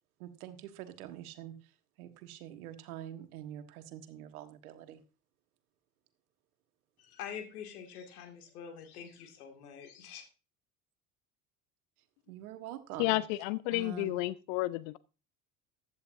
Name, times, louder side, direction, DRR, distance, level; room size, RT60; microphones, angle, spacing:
voice 1, 0.2-1.5 2.0-5.0 12.3-13.2 13.7-14.1, right 12 dB, 70° right, 1.5 m, -45 dB
voice 2, 7.0-10.3, left 8 dB, 70° left, 2.5 m, -45 dB
voice 3, 13.0-15.0, left 17 dB, 55° left, 0.5 m, -31 dB
15.0 x 10.5 x 2.7 m
figure-of-eight pair, 65°, 46 cm